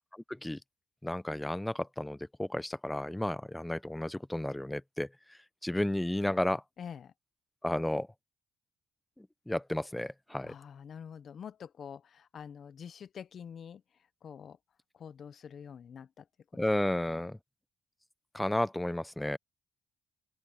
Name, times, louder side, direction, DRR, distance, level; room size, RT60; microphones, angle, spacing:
voice 1, 0.3-0.6 1.0-5.1 5.6-6.6 7.6-8.1 9.2-10.5 16.6-17.4 18.3-19.4, left 1 dB, 10° left, 0.8 m, -32 dB
voice 2, 6.8-7.1 10.4-13.8 14.2-14.6 14.9-16.3 16.5-16.6 17.1-17.3, left 7 dB, 55° left, 1.0 m, -46 dB
open air
supercardioid pair, 75°, 0 cm